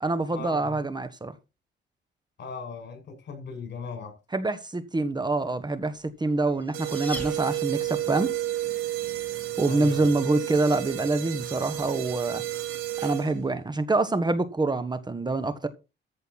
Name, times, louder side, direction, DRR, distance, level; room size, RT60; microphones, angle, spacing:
voice 1, 0.0-1.3 4.3-8.3 9.6-12.4 13.0-15.7, right 2 dB, 20° right, 1.5 m, -26 dB
voice 2, 2.4-4.1 9.7-10.1, left 5 dB, 60° left, 6.0 m, -38 dB
sound 1, 6.3-8.1, left 1 dB, 10° left, 4.9 m, -41 dB
sound 2, 6.7-13.5, right 14 dB, 90° right, 3.9 m, -31 dB
14.5 x 6.7 x 4.2 m
cardioid pair, 90°, 20 cm